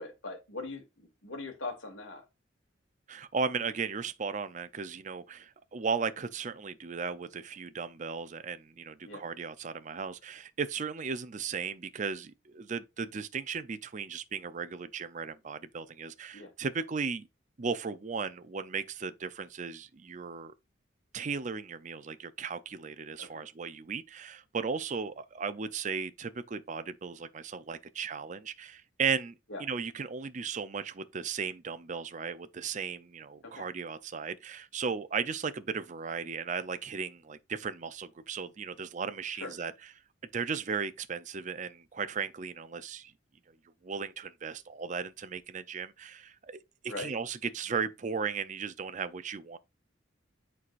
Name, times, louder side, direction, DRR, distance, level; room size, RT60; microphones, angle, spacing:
voice 1, 0.0-2.2 9.1-9.2 16.3-16.5 23.2-23.4 29.5-29.6 33.4-33.6 39.3-39.5 46.9-47.1, left 3 dB, 90° left, 2.4 m, -41 dB
voice 2, 3.1-17.3 17.6-20.5 21.1-39.9 40.3-43.1 43.8-46.6 46.8-49.6, right 5 dB, 40° right, 0.5 m, -36 dB
8.4 x 4.6 x 2.5 m
head